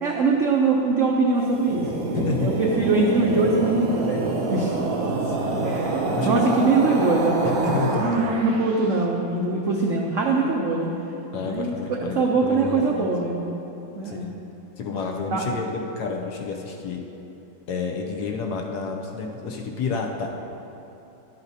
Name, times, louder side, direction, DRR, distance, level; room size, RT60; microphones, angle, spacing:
voice 1, 0.0-1.9 2.4-4.7 5.6-10.9 11.5-13.5 13.9-14.3 15.3-15.4, right 3 dB, 90° right, -1 dB, 0.6 m, -23 dB
sound 1, 1.4-8.8, right 3 dB, 60° right, 0.9 m, -26 dB
voice 2, 2.1-2.5 5.2-5.8 6.1-6.8 7.4-8.3 11.3-13.1 14.0-14.3 14.8-17.0 17.7-20.3, left 5 dB, 70° left, 1 dB, 1.1 m, -30 dB
11.0 x 8.0 x 2.7 m, 3.0 s
omnidirectional pair, 2.1 m